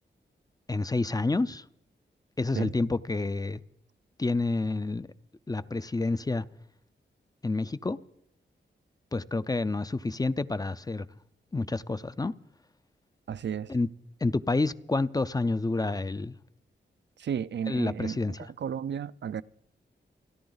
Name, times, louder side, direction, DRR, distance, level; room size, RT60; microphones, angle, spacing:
voice 1, 0.7-1.6 2.4-3.6 4.2-5.1 5.5-6.5 7.4-8.0 9.1-11.1 11.5-12.3 13.7-13.9 14.2-16.3 17.7-18.4, left 3 dB, 20° left, 0.5 m, -28 dB
voice 2, 13.3-13.7 17.2-19.4, right 8 dB, 70° right, 0.5 m, -33 dB
29.5 x 10.5 x 4.0 m
wide cardioid pair, 85°, 19 cm